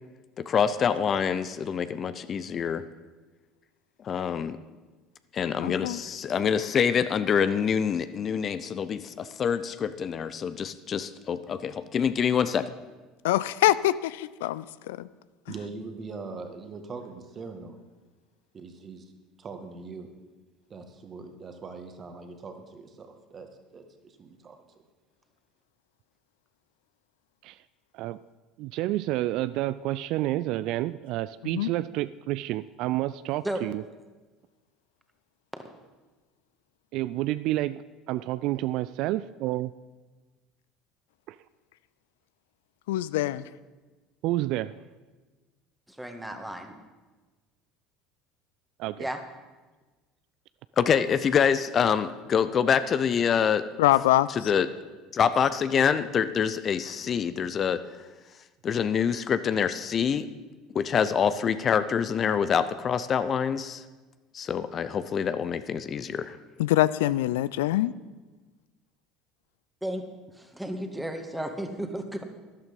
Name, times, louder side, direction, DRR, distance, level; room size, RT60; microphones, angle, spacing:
voice 1, 0.4-2.8 4.0-4.6 5.3-12.7 50.8-53.7 54.4-54.7 55.1-57.8 58.6-60.3 60.7-63.8 64.3-66.4, left 7 dB, 40° left, 13 dB, 0.6 m, -26 dB
voice 2, 5.6-6.0 13.2-15.1 31.5-31.7 42.9-43.4 53.8-54.3 66.6-67.9, left 15 dB, 75° left, 17 dB, 0.3 m, -24 dB
voice 3, 15.5-17.8 18.5-19.1 19.4-20.1 20.7-24.8, right 4 dB, 35° right, 6 dB, 1.9 m, -42 dB
voice 4, 28.6-33.8 36.9-39.7 41.3-41.4 44.2-44.7 48.8-49.1, right 16 dB, 60° right, 16 dB, 0.3 m, -29 dB
voice 5, 45.9-46.8 49.0-49.2 69.8-70.0 70.3-72.2, right 1 dB, 5° right, 5 dB, 1.8 m, -33 dB
12.5 x 11.5 x 5.4 m, 1.3 s
hypercardioid pair, 70°, 0 cm